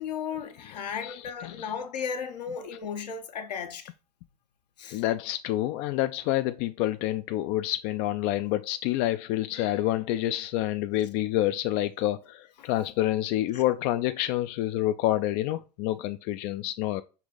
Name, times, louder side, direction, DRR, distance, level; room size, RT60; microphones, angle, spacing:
voice 1, 0.0-3.9 4.8-5.0 12.6-12.7 13.5-13.6, left 7 dB, 80° left, 0.8 m, -35 dB
voice 2, 1.0-1.7 4.9-17.0, left 14 dB, 50° left, 0.4 m, -28 dB
5.6 x 2.5 x 3.7 m
hypercardioid pair, 80°, 21 cm